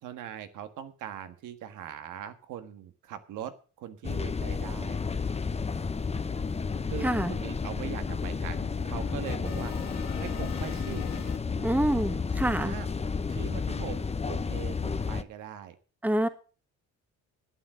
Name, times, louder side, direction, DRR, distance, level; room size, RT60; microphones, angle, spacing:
voice 1, 0.0-5.0 6.9-9.8 10.2-11.0 12.6-12.9 13.3-15.8, right 10 dB, 90° right, 1.6 m, -41 dB
sound 1, 4.0-15.2, left 5 dB, 20° left, 0.8 m, -32 dB
sound 2, 5.0-5.2 5.4-11.4, left 9 dB, 60° left, 2.4 m, -45 dB
voice 2, 7.0-7.3 11.6-12.8 16.0-16.3, right 1 dB, 5° right, 1.3 m, -26 dB
11.5 x 9.3 x 6.1 m
cardioid pair, 90°, 30 cm